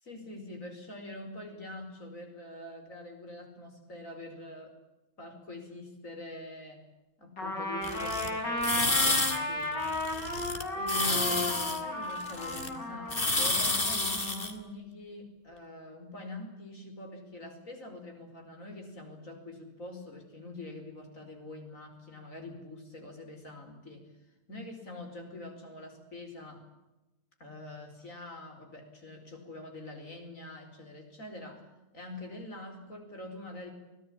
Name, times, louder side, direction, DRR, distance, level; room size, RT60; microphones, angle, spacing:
voice 1, 0.0-4.7 5.2-6.8 7.2-9.8 10.7-24.1 24.5-26.6 27.4-31.6 31.9-33.7, left 2 dB, 50° left, 4 dB, 5.5 m, -44 dB
Trumpet, 7.4-14.5, left 1 dB, 80° left, 6.5 m, -34 dB
sound 1, 7.8-8.3 8.6-9.4 9.6-10.6 10.9-12.7 13.1-14.5, left 2 dB, 30° left, 2.5 m, -30 dB
24.0 x 18.0 x 8.8 m, 1.0 s
omnidirectional pair, 1.9 m